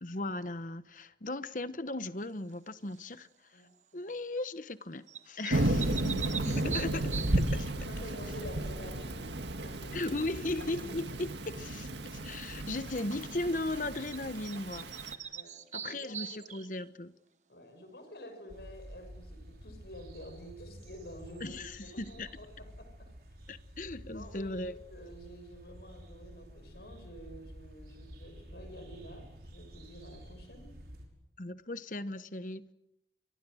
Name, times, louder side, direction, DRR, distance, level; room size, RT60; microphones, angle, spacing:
voice 1, 0.0-3.6 3.9-7.7 9.9-15.3 15.7-17.1 21.4-22.3 23.5-24.7 31.4-32.7, left 2 dB, 45° left, 1.1 m, -37 dB
sound 1, 2.9-3.3 5.1-7.7 14.1-14.2 14.4-16.9, right 8 dB, 40° right, 1.3 m, -41 dB
voice 2, 3.5-4.1 5.5-6.0 7.4-9.3 9.6-10.2 15.3-16.6 17.5-23.1 24.1-30.8, equal, 65° left, 6.3 m, -50 dB
Thunder / Rain, 5.5-15.1, right 1 dB, 80° right, 1.9 m, -34 dB
sound 2, 18.5-31.1, equal, 55° right, 5.8 m, -50 dB
28.5 x 24.5 x 6.4 m
head